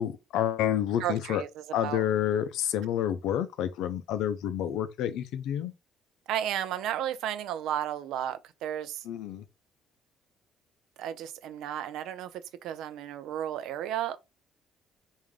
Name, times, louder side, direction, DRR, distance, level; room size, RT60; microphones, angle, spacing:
voice 1, 0.0-1.4 1.7-5.7 9.0-9.4, left 10 dB, 85° left, 0.5 m, -29 dB
voice 2, 1.0-2.0 6.3-9.0 11.0-12.3 12.6-14.2, right 10 dB, 80° right, 0.4 m, -33 dB
3.6 x 2.5 x 3.2 m
cardioid pair, 155°, 0 cm